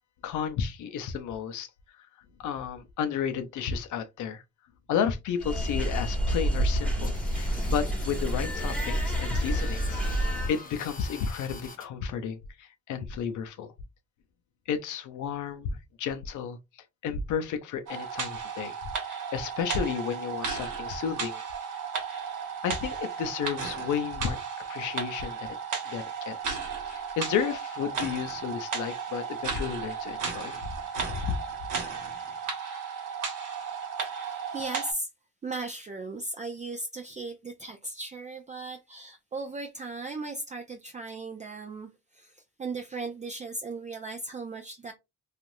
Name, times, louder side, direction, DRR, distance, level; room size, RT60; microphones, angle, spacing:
voice 1, 0.2-1.7 2.0-2.1 2.4-4.4 4.9-13.7 14.7-16.6 17.0-18.7 19.1-21.4 22.6-24.4 24.7-25.6 25.9-26.6 26.9-30.6 31.1-31.4, left 7 dB, 80° left, 0.6 m, -32 dB
sound 1, 5.4-10.5, equal, 5° left, 1.2 m, -28 dB
sound 2, 7.0-11.9, left 3 dB, 30° left, 0.7 m, -45 dB
sound 3, 17.9-34.9, right 6 dB, 80° right, 1.1 m, -34 dB
voice 2, 34.2-35.1 35.4-44.9, right 3 dB, 25° right, 0.4 m, -37 dB
3.2 x 2.4 x 2.6 m
cardioid pair, 90°, 30 cm